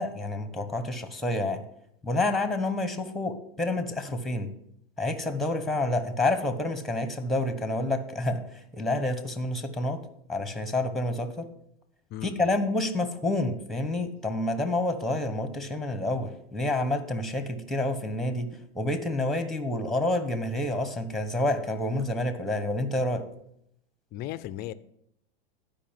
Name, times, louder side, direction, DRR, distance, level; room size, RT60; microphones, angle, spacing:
voice 1, 0.0-1.6 2.0-4.5 5.0-10.0 10.3-11.5 12.2-23.2, left 2 dB, ahead, 10 dB, 1.2 m, -28 dB
voice 2, 12.1-12.5 24.1-24.7, left 13 dB, 30° left, 15 dB, 0.5 m, -36 dB
11.5 x 5.2 x 7.5 m, 0.74 s
hypercardioid pair, 115°, 30 cm